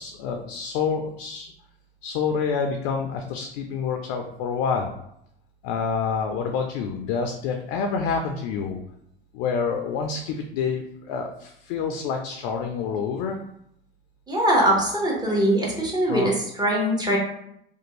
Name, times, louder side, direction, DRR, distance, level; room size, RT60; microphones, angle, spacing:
voice 1, 0.0-1.5 2.0-4.9 5.6-8.8 9.3-13.4 16.1-16.3, left 5 dB, 70° left, 4 dB, 0.4 m, -27 dB
voice 2, 14.3-17.2, right 1 dB, 15° right, -3 dB, 0.9 m, -22 dB
2.5 x 2.2 x 3.0 m, 0.76 s
supercardioid pair, 90°, 29 cm